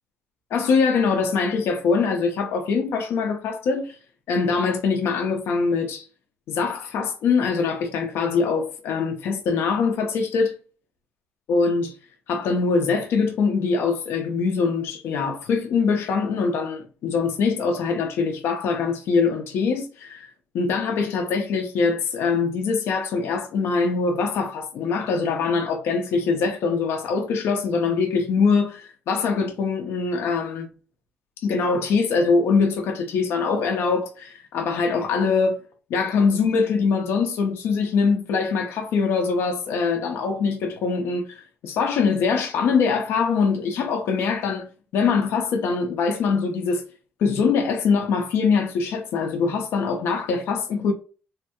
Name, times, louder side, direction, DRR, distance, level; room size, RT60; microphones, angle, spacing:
voice 1, 0.5-4.0 4.3-6.1 6.5-10.5 11.5-11.9 12.3-20.3 20.5-30.7 31.4-35.6 35.9-44.7 44.9-46.8 47.2-50.9, left 5 dB, 85° left, 0.6 m, -23 dB
3.2 x 2.2 x 2.8 m
cardioid pair, 95°, 4 cm